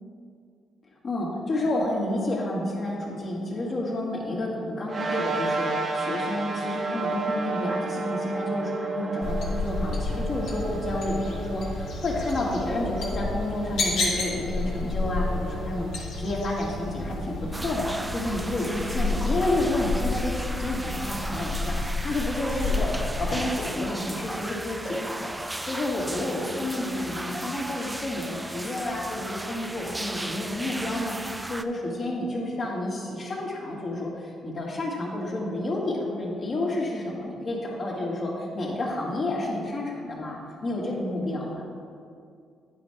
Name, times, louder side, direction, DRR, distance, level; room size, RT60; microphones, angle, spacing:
voice 1, 1.0-21.8 22.0-41.7, left 1 dB, 45° left, -3 dB, 2.0 m, -30 dB
sound 1, 4.9-17.6, right 3 dB, 45° right, 0.7 m, -33 dB
sound 2, 9.2-23.4, left 2 dB, 80° left, 2.0 m, -31 dB
sound 3, 17.5-31.6, right 1 dB, 10° right, 0.3 m, -36 dB
9.8 x 4.4 x 5.0 m, 2.3 s
cardioid pair, 90°, 0 cm